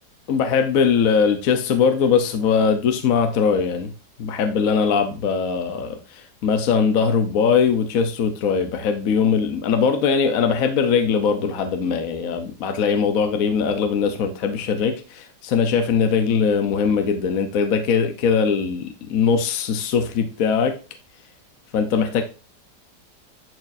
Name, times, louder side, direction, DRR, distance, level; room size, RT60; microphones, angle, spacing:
voice 1, 0.3-3.9 4.2-20.8 21.7-22.2, left 6 dB, 60° left, 7 dB, 1.1 m, -21 dB
10.5 x 4.4 x 2.6 m, 0.34 s
omnidirectional pair, 1.9 m